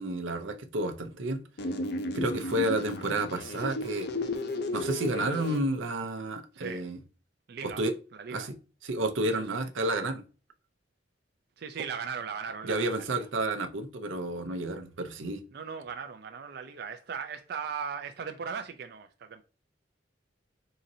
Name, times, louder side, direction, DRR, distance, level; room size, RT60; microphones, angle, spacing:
voice 1, 0.0-1.4 2.1-4.1 4.7-7.0 7.6-7.9 8.3-8.5 8.8-10.2 12.6-15.4, right 1 dB, 90° right, 0.7 m, -31 dB
sound 1, 1.6-5.6, left 1 dB, 55° left, 0.6 m, -34 dB
voice 2, 6.5-6.9 7.5-7.8 8.1-8.5 9.4-9.6 11.6-13.2 15.5-19.4, right 6 dB, 55° right, 0.4 m, -38 dB
4.1 x 3.9 x 2.7 m
head